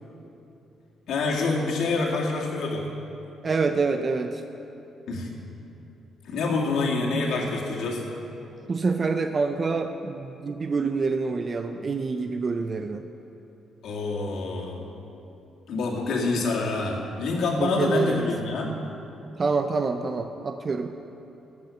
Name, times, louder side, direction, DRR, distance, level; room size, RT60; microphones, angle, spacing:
voice 1, 1.1-2.9 5.1-5.3 6.2-8.0 13.8-14.8 15.7-18.8, left 3 dB, 75° left, -2 dB, 2.3 m, -26 dB
voice 2, 3.4-4.4 8.7-13.0 17.6-18.3 19.4-20.9, right 4 dB, 35° right, 7 dB, 0.5 m, -26 dB
16.5 x 6.9 x 6.5 m, 3.0 s
cardioid pair, 90°, 0 cm